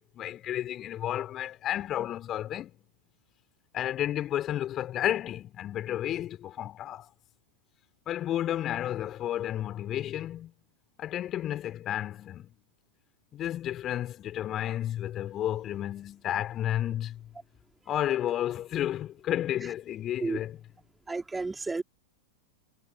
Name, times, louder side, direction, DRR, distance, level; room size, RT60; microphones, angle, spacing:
voice 1, 0.0-2.7 3.7-7.1 8.1-10.5 11.0-12.5 13.3-17.2 17.9-20.6, left 12 dB, 30° left, 3.8 m, -32 dB
voice 2, 21.1-21.8, right 3 dB, 10° right, 4.2 m, -31 dB
figure-of-eight pair, 90°, 0 cm